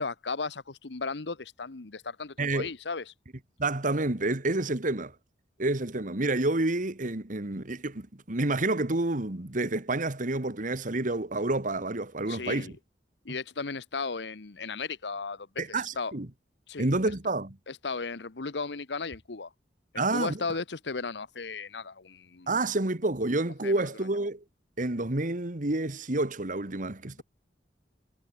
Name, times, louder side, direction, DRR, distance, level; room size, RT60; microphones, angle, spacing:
voice 1, 0.0-3.1 12.3-12.8 13.2-15.6 16.0-16.1 16.7-16.9 17.7-19.5 19.9-22.6 23.6-23.8, left 4 dB, 75° left, 1.1 m, -35 dB
voice 2, 2.4-2.7 3.6-5.1 5.6-12.7 15.6-16.3 16.8-17.5 20.0-20.4 22.5-24.4 24.8-27.2, right 2 dB, 50° right, 1.9 m, -29 dB
head